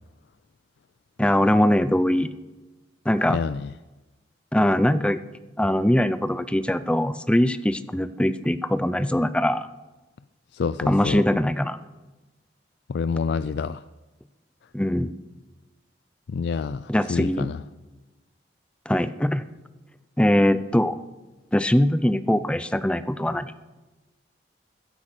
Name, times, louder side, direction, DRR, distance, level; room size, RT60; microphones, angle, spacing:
voice 1, 1.2-2.3 3.1-3.4 4.5-5.2 5.6-9.7 10.9-11.8 14.7-15.1 16.9-17.5 18.9-19.4 20.2-21.0 21.5-23.5, left 1 dB, 5° left, 13 dB, 0.5 m, -22 dB
voice 2, 3.3-3.7 10.5-11.2 12.9-13.8 16.3-17.6, left 5 dB, 65° left, 14 dB, 0.4 m, -28 dB
14.5 x 10.5 x 6.7 m, 1.2 s
head